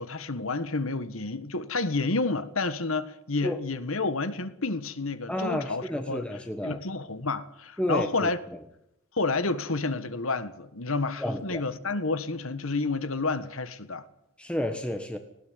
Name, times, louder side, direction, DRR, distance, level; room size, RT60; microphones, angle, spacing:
voice 1, 0.0-6.3 6.6-8.4 9.1-14.0, left 3 dB, 70° left, 1.6 m, -30 dB
voice 2, 5.3-6.8 7.8-8.3 11.2-11.6 14.4-15.2, left 1 dB, 5° left, 1.4 m, -30 dB
19.0 x 17.0 x 9.6 m
head